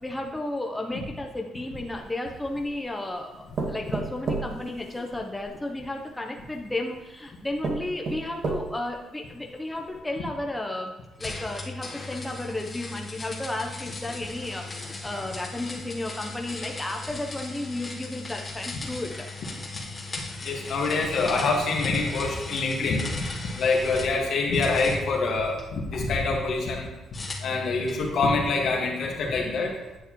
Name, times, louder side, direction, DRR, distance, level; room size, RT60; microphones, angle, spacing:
voice 1, 0.0-19.3 29.2-29.4, left 1 dB, 10° left, 1 dB, 0.8 m, -33 dB
sound 1, 1.9-2.8 3.6-5.5 6.5-6.6 7.2-7.3 7.6-9.0 9.5-9.6 9.9-10.0, right 3 dB, 55° right, 1.5 m, -32 dB
sound 2, 11.2-24.2 24.5-26.0 27.1-28.1, left 3 dB, 30° left, 1.2 m, -38 dB
voice 2, 20.4-23.1 23.6-26.9 27.4-29.8, left 3 dB, 70° left, 0 dB, 1.8 m, -25 dB
9.4 x 6.5 x 3.1 m, 1.0 s
cardioid pair, 90°, 0 cm